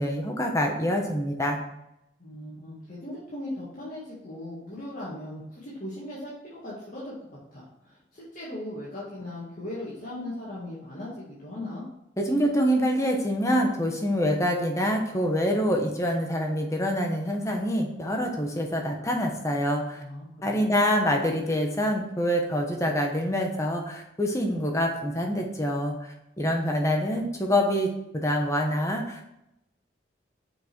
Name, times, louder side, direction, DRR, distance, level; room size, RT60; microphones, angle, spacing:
voice 1, 0.0-1.6 12.2-20.0 20.4-29.3, equal, 15° left, 2 dB, 1.1 m, -26 dB
voice 2, 2.2-7.1 7.5-11.8 19.9-20.8, left 1 dB, 45° left, -8 dB, 1.9 m, -38 dB
6.1 x 5.2 x 4.5 m, 0.83 s
head